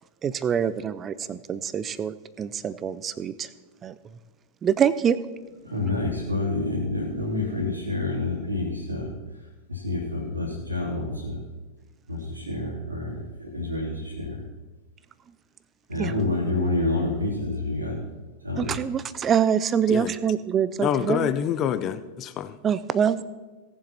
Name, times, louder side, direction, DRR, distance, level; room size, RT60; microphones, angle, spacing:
voice 1, 0.2-3.5 3.8-3.9 4.6-5.2 16.0-16.1 18.6-21.3 22.6-23.2, right 8 dB, 25° right, 16 dB, 0.6 m, -25 dB
voice 2, 5.6-9.1 9.7-11.4 12.1-14.4 15.9-18.0 18.4-18.7, left 2 dB, 80° right, -3 dB, 3.0 m, -28 dB
voice 3, 20.8-22.6, left 9 dB, 30° left, 12 dB, 0.7 m, -26 dB
17.5 x 7.3 x 4.3 m, 1.2 s
figure-of-eight pair, 90°, 0 cm